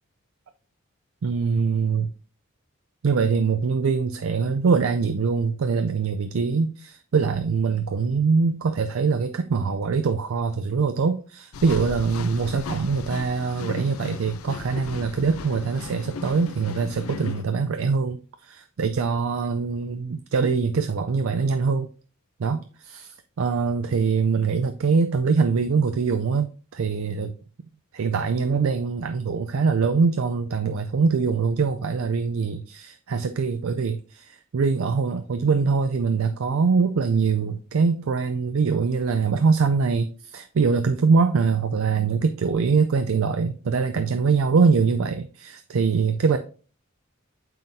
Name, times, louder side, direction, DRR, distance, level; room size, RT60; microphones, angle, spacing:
voice 1, 1.2-2.1 3.0-18.2 18.4-21.9 22.4-27.3 27.9-46.4, right 5 dB, 75° right, 9 dB, 0.4 m, -23 dB
sound 1, 11.5-17.4, left 4 dB, 80° left, 0.5 m, -36 dB
7.2 x 5.6 x 2.6 m, 0.39 s
head